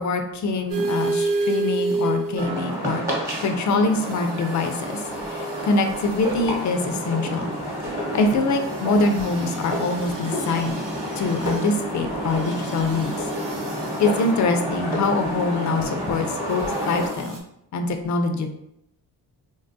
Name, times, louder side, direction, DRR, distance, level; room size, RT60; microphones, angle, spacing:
voice 1, 0.0-3.0 3.4-5.0 5.3-7.6 8.1-10.8 11.2-13.3 14.0-17.4 17.7-18.5, left 3 dB, 50° left, 6 dB, 0.5 m, -24 dB
sound 1, 0.7-2.8 4.0-6.4 8.6-11.7 12.3-14.3 16.7-17.4, right 3 dB, 55° right, 0.6 m, -31 dB
sound 2, 2.4-17.1, equal, 5° right, 1.0 m, -29 dB
3.3 x 2.2 x 2.5 m, 0.79 s
cardioid pair, 95°, 39 cm